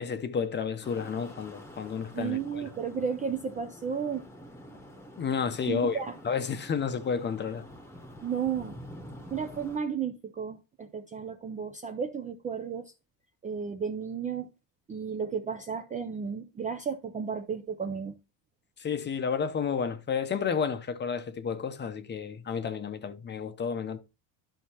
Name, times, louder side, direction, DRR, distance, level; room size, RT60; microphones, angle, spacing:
voice 1, 0.0-2.6 5.2-7.7 18.8-24.0, left 6 dB, 25° left, 0.7 m, -31 dB
sound 1, 0.8-9.8, equal, 5° left, 1.0 m, -48 dB
voice 2, 2.1-4.3 5.7-6.2 8.2-8.8 9.3-12.9 13.4-14.5 14.9-18.1, right 7 dB, 20° right, 0.4 m, -33 dB
11.0 x 5.6 x 2.9 m
cardioid pair, 125°, 43 cm